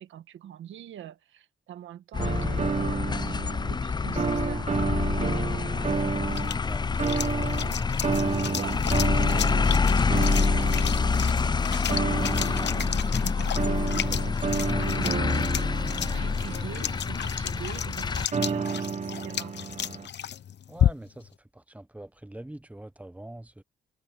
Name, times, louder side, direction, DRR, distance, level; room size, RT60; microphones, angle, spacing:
voice 1, 0.0-3.3 3.7-4.7 8.5-10.7 12.4-15.3 16.0-19.5, right 10 dB, 85° right, 1.7 m, -43 dB
sound 1, 2.1-18.3, left 5 dB, 20° left, 0.4 m, -27 dB
sound 2, 2.2-3.8 4.2-6.6 7.0-17.0 18.3-20.1, right 5 dB, 40° right, 1.1 m, -31 dB
sound 3, 5.7-21.3, left 10 dB, 65° left, 1.0 m, -34 dB
voice 2, 6.6-7.6 20.7-23.6, right 1 dB, 5° right, 1.2 m, -44 dB
cardioid pair, 70°, 19 cm